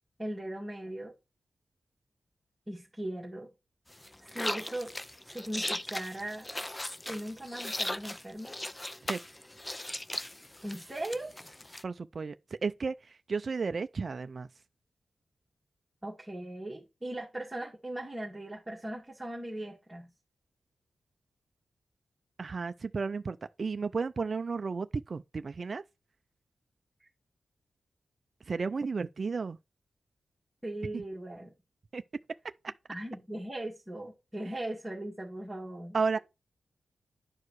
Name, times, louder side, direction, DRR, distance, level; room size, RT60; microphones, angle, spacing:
voice 1, 0.2-1.1 2.7-3.5 4.2-5.0 5.2-6.5 7.1-8.6 10.6-11.3 16.0-20.1 30.6-31.5 32.9-36.2, right 1 dB, 15° right, 1.9 m, -39 dB
sound 1, 3.9-11.8, left 1 dB, 15° left, 0.5 m, -38 dB
voice 2, 11.8-12.3 12.6-12.9 13.3-14.5 22.4-25.8 28.5-29.6 30.9-31.0 31.9-32.0 35.9-36.2, right 4 dB, 45° right, 0.5 m, -33 dB
10.5 x 4.8 x 4.6 m
wide cardioid pair, 130°, 0 cm